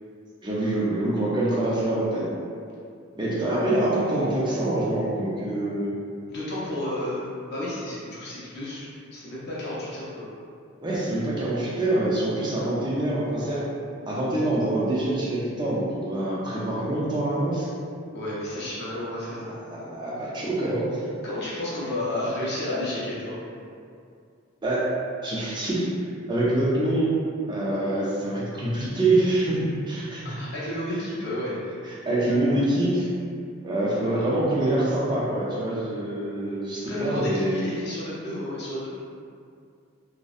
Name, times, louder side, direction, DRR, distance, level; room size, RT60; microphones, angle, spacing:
voice 1, 0.4-2.3 3.2-5.9 10.8-13.7 14.1-17.7 19.4-21.0 24.6-24.9 25.2-25.9 26.3-27.1 27.5-30.4 31.8-33.1 33.6-37.6, right 1 dB, 20° right, -6 dB, 0.4 m, -25 dB
voice 2, 6.3-10.3 18.1-19.5 21.2-23.4 30.4-31.6 34.1-34.2 36.8-38.9, left 1 dB, 50° left, -9 dB, 0.5 m, -31 dB
2.6 x 2.0 x 2.3 m, 2.3 s
head